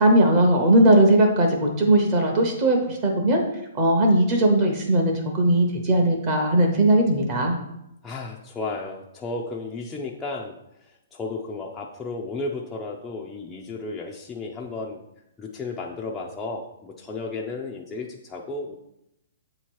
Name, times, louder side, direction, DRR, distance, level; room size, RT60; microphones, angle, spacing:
voice 1, 0.0-3.4 3.7-7.6, right 1 dB, 25° right, 1 dB, 0.8 m, -19 dB
voice 2, 8.0-10.5 11.1-15.0 15.4-18.8, left 3 dB, 10° left, -3 dB, 0.4 m, -33 dB
7.8 x 2.9 x 4.6 m, 0.83 s
hypercardioid pair, 170°, 0 cm